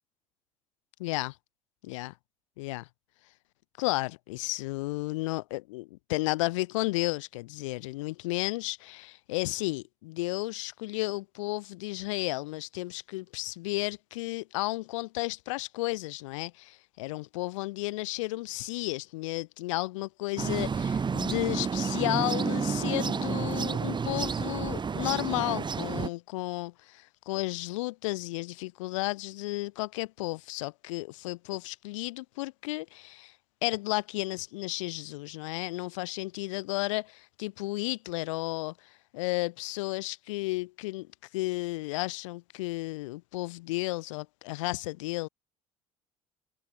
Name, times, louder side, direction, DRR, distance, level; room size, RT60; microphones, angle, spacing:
voice 1, 1.0-1.3 1.9-2.1 2.6-2.9 3.8-33.3 33.6-38.7 39.1-41.1 41.3-45.3, left 21 dB, 65° left, 1.3 m, -33 dB
sound 1, 20.4-26.1, right 5 dB, 25° right, 2.0 m, -30 dB
figure-of-eight pair, 60°, 17 cm